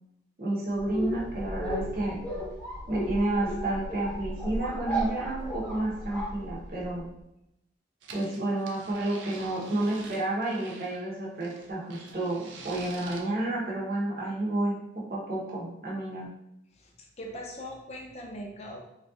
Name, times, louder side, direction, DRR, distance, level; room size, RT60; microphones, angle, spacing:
voice 1, 0.4-2.2 2.9-7.1 8.1-16.3, right 2 dB, 50° right, -5 dB, 0.9 m, -30 dB
sound 1, 0.7-7.0, equal, 10° left, 0.8 m, -35 dB
sound 2, 8.0-11.0 11.4-13.2, right 4 dB, 90° right, 0.4 m, -47 dB
voice 2, 16.7-18.9, equal, 35° left, 1 dB, 0.5 m, -41 dB
3.3 x 2.4 x 2.6 m, 0.85 s
head